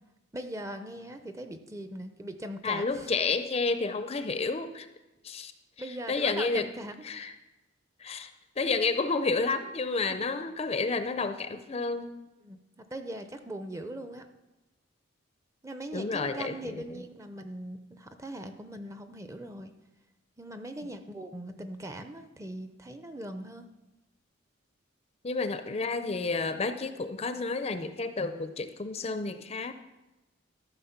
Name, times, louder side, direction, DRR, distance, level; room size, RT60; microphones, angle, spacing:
voice 1, 0.3-3.1 5.8-7.2 10.1-10.3 12.4-12.6 12.9-14.3 15.6-19.7 20.4-23.7, right 1 dB, 15° right, 8 dB, 0.6 m, -40 dB
voice 2, 2.6-4.9 5.2-5.5 6.1-6.7 7.1-7.3 8.0-8.3 8.6-12.2 15.9-17.0 25.2-29.7, left 4 dB, 30° left, 10 dB, 0.5 m, -30 dB
13.5 x 5.9 x 5.8 m, 1.0 s
head